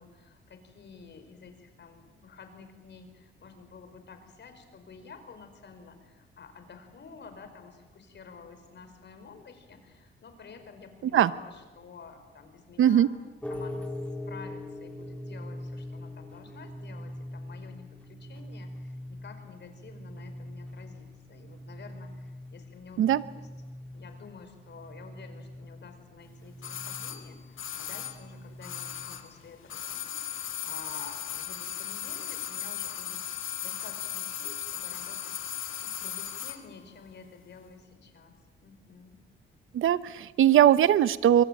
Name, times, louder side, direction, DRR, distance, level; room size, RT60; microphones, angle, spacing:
voice 1, 0.0-13.1 13.5-13.9 14.3-23.5 23.9-35.3 35.8-38.3 38.6-39.2, left 5 dB, 60° left, 8 dB, 5.0 m, -50 dB
voice 2, 12.8-13.1 23.0-23.2 39.7-41.4, right 11 dB, 80° right, 16 dB, 0.9 m, -20 dB
sound 1, 13.4-29.3, left 1 dB, 5° left, 2.8 m, -42 dB
sound 2, 26.6-29.4 29.6-36.7 36.9-37.0, left 11 dB, 75° left, 2.3 m, -37 dB
24.0 x 23.0 x 9.0 m, 1.2 s
cardioid pair, 85°, 21 cm